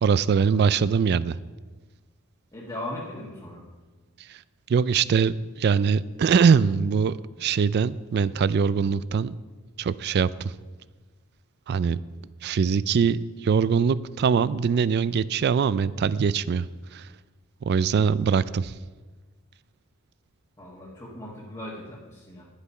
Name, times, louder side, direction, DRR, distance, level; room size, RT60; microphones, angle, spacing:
voice 1, 0.0-1.4 4.3-4.4 4.7-9.4 9.8-10.5 11.7-12.0 12.4-17.1 17.6-18.7, right 6 dB, 50° right, 18 dB, 0.3 m, -22 dB
voice 2, 2.5-3.6 20.6-22.4, left 1 dB, 20° left, -5 dB, 1.4 m, -38 dB
10.5 x 8.3 x 5.5 m, 1.3 s
head